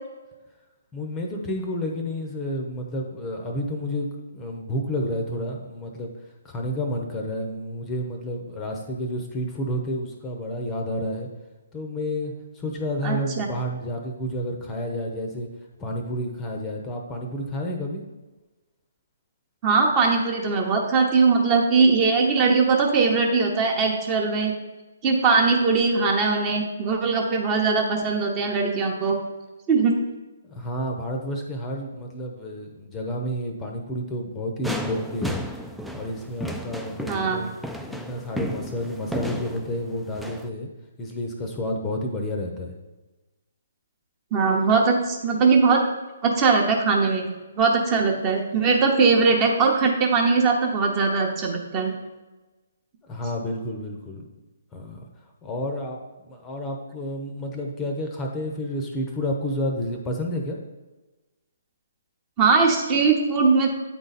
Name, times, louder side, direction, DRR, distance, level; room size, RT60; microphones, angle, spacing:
voice 1, 0.9-6.1 6.4-11.3 11.7-15.5 15.8-18.0 30.5-35.4 35.9-40.7 41.0-42.7 53.0-54.2 54.7-55.0 55.4-60.6, equal, 15° left, 2 dB, 0.7 m, -30 dB
voice 2, 13.0-13.5 19.6-24.5 25.0-29.2 29.7-30.0 37.1-37.4 44.3-45.8 46.2-47.3 47.6-51.9 62.4-63.7, right 4 dB, 25° right, 1 dB, 0.9 m, -20 dB
sound 1, 34.6-40.5, equal, ahead, 0.3 m, -33 dB
8.4 x 3.9 x 4.1 m, 1.2 s
hypercardioid pair, 150°, 0 cm